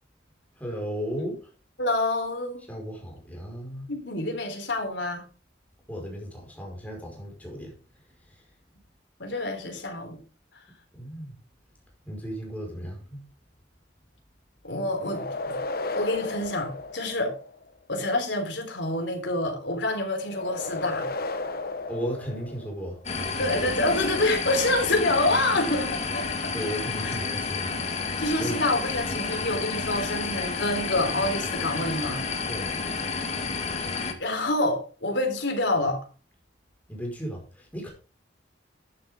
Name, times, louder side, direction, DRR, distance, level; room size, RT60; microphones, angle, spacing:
voice 1, 0.6-1.4 2.7-3.9 5.9-7.7 8.3-8.4 11.0-11.4 12.0-13.2 21.9-23.5 26.5-27.8 28.4-28.6 32.5-32.8 36.9-37.9, equal, 10° left, 5.0 m, -35 dB
voice 2, 1.8-2.6 3.9-5.2 9.2-10.2 14.6-15.6 15.9-17.4 17.9-21.1 23.4-26.3 27.0-27.1 28.2-32.2 33.6-36.0, left 2 dB, 70° left, 3.8 m, -27 dB
sound 1, 14.9-17.7 20.3-23.0, left 2 dB, 55° left, 1.2 m, -34 dB
sound 2, 23.0-34.1, left 4 dB, 35° left, 1.8 m, -30 dB
11.5 x 10.0 x 3.7 m
head